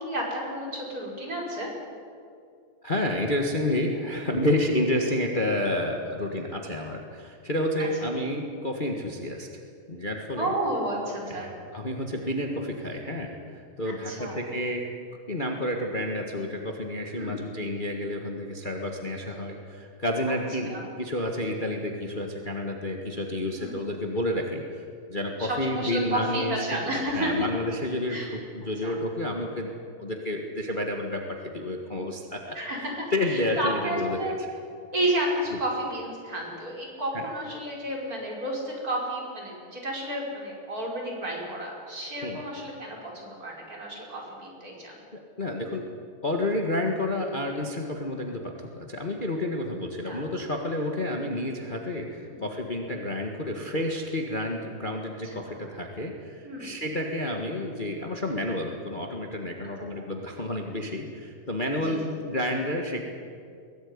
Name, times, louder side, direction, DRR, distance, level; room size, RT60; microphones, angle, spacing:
voice 1, 0.0-1.7 10.4-11.5 13.8-14.4 17.1-17.5 20.3-20.4 20.7-20.8 23.6-23.8 25.4-27.5 28.1-28.4 28.8-29.0 32.5-34.4 34.9-45.0 50.0-50.3 52.3-52.4 55.2-55.7 56.4-56.8 60.0-60.1 61.8-62.0, right 1 dB, 25° right, -2 dB, 5.4 m, -32 dB
voice 2, 2.8-9.6 9.9-10.5 11.3-14.9 15.3-24.8 25.1-28.2 28.5-29.7 30.0-32.5 33.1-34.2 42.2-42.4 45.4-45.8 46.2-63.0, left 1 dB, 35° left, 2 dB, 0.7 m, -30 dB
22.5 x 17.5 x 9.8 m, 2.3 s
omnidirectional pair, 3.9 m